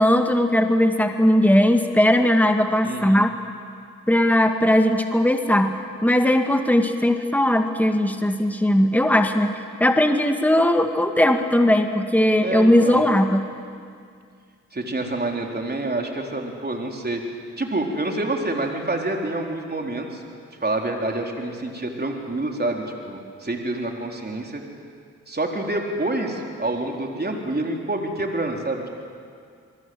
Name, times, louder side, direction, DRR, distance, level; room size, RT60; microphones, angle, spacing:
voice 1, 0.0-3.3 4.1-5.8 6.0-9.5 9.8-13.4, left 1 dB, 5° left, 5 dB, 2.0 m, -18 dB
voice 2, 2.8-3.2 12.4-13.0 14.7-17.2 17.6-20.2 20.6-24.6 25.3-28.9, right 2 dB, 30° right, 1 dB, 4.0 m, -27 dB
24.5 x 23.5 x 8.0 m, 2.2 s
supercardioid pair, 40°, 31 cm